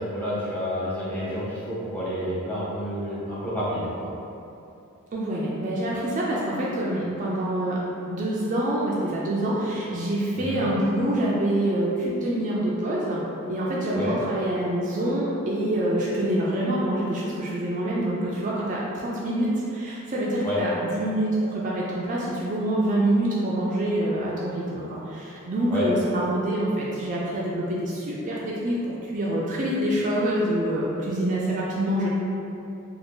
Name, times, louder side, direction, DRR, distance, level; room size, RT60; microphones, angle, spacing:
voice 1, 0.0-4.1 10.3-10.6 13.9-14.1 20.4-20.6 25.7-25.9, equal, 10° left, -9 dB, 0.7 m, -29 dB
voice 2, 5.1-7.8 8.1-13.2 13.5-28.8 29.0-32.1, right 1 dB, 40° right, -5 dB, 0.4 m, -26 dB
2.6 x 2.3 x 3.5 m, 2.7 s
head